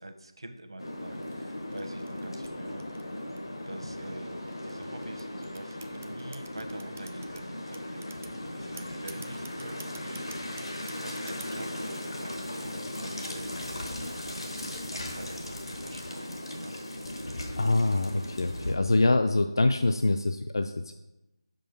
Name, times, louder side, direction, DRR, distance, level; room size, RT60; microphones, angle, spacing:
voice 1, 0.0-2.8 3.7-16.7, right 1 dB, 75° right, 6 dB, 0.9 m, -45 dB
sound 1, 0.8-18.7, left 1 dB, 80° left, 1.2 m, -38 dB
sound 2, 1.1-3.6 4.3-7.4 7.7-8.4 8.8-11.7, right 4 dB, 25° right, 0.4 m, -49 dB
voice 2, 17.6-20.9, left 2 dB, 55° left, 7 dB, 0.4 m, -25 dB
5.3 x 4.5 x 5.4 m, 0.97 s
figure-of-eight pair, 170°, 3 cm